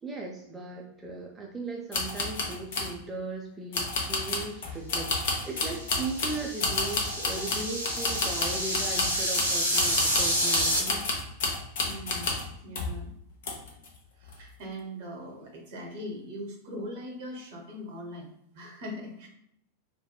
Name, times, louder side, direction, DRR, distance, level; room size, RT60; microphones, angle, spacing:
voice 1, 0.0-11.1, right 3 dB, 15° right, -2 dB, 0.4 m, -37 dB
sound 1, 1.9-2.9 3.7-12.5 12.7-13.0 13.4-13.9 14.2-14.4, left 3 dB, 55° left, 0.6 m, -30 dB
sound 2, 5.7-10.8, equal, 85° right, 0.7 m, -29 dB
voice 2, 11.8-13.1 14.2-19.3, equal, 50° right, 1 dB, 0.7 m, -41 dB
2.8 x 2.1 x 2.3 m, 0.72 s
figure-of-eight pair, 90°, 0 cm